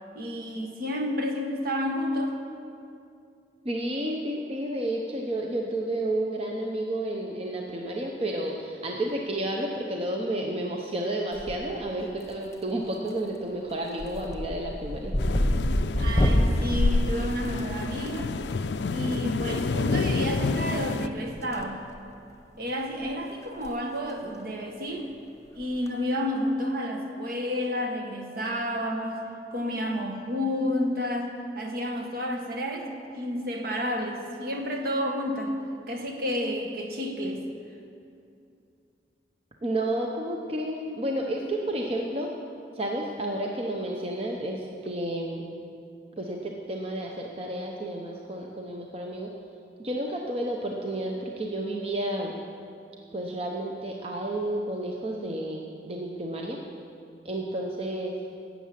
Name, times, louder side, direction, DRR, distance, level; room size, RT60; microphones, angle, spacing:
voice 1, 0.1-2.3 16.0-18.3 18.9-21.8 22.6-25.1 25.5-29.2 29.5-32.9 33.1-35.5 35.9-37.4, equal, 55° right, 3 dB, 1.4 m, -30 dB
voice 2, 3.6-15.1 39.6-42.3 42.7-45.4 46.2-49.3 49.8-52.3 53.1-56.6 57.2-58.1, right 1 dB, 35° right, 0 dB, 0.8 m, -31 dB
sound 1, 11.3-11.9 12.2-12.7 13.1-13.4 13.7-18.1 19.5-19.6 20.8-21.6 21.9-22.1 22.7-22.8 23.0-23.1 23.5-23.7 24.0-24.1 25.6-25.9, equal, 15° left, 1.0 m, -27 dB
sound 2, 15.2-21.1, left 3 dB, 75° left, 0.4 m, -28 dB
12.0 x 8.4 x 7.5 m, 2.5 s
head